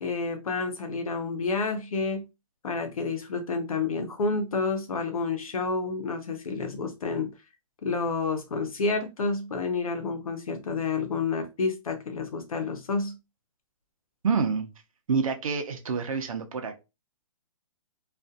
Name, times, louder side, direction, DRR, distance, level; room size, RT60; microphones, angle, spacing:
voice 1, 0.0-2.3 2.6-7.3 7.8-13.2, left 4 dB, 80° left, 0.8 m, -29 dB
voice 2, 14.2-14.7 15.1-16.8, right 5 dB, 75° right, 0.7 m, -27 dB
2.6 x 2.5 x 2.3 m
hypercardioid pair, 140°, 18 cm